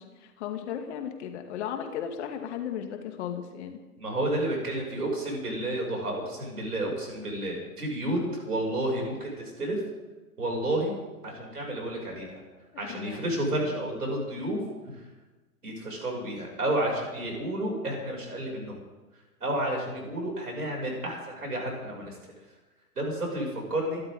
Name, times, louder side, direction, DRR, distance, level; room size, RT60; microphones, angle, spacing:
voice 1, 0.0-3.8 12.9-13.2 13.5-13.8, left 9 dB, 45° left, 5 dB, 2.6 m, -36 dB
voice 2, 4.0-9.8 10.4-11.0 11.2-12.4 12.8-14.6 15.6-18.8 19.4-22.2 23.0-24.0, right 1 dB, 75° right, 0 dB, 7.4 m, -31 dB
27.0 x 12.5 x 4.0 m, 1.2 s
figure-of-eight pair, 110°, 47 cm